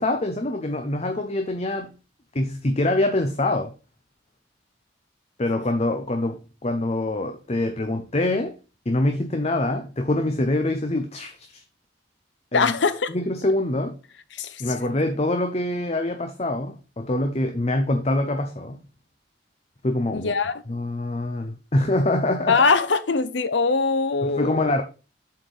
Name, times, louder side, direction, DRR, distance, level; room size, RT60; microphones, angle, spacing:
voice 1, 0.0-1.9 2.3-3.7 5.4-8.6 8.9-11.5 12.5-12.7 13.1-14.0 14.6-18.8 19.8-20.3 20.7-22.6 24.2-24.8, left 1 dB, 35° left, 0.8 m, -25 dB
voice 2, 12.5-13.1 14.3-14.6 20.1-20.5 22.5-24.6, left 4 dB, 75° left, 0.8 m, -22 dB
7.5 x 4.5 x 5.2 m
head